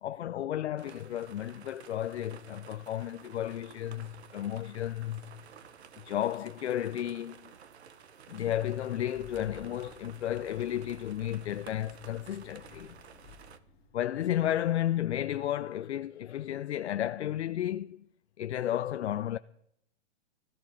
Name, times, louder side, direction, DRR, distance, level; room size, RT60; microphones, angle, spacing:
voice 1, 0.0-5.2 6.0-7.5 8.3-13.0 13.9-18.0 18.4-19.4, left 12 dB, 75° left, 0.6 m, -33 dB
sound 1, 0.8-13.6, right 7 dB, 70° right, 1.2 m, -53 dB
Engine starting, 9.1-14.7, left 4 dB, 20° left, 3.1 m, -54 dB
16.0 x 14.0 x 4.9 m
hypercardioid pair, 170°, 34 cm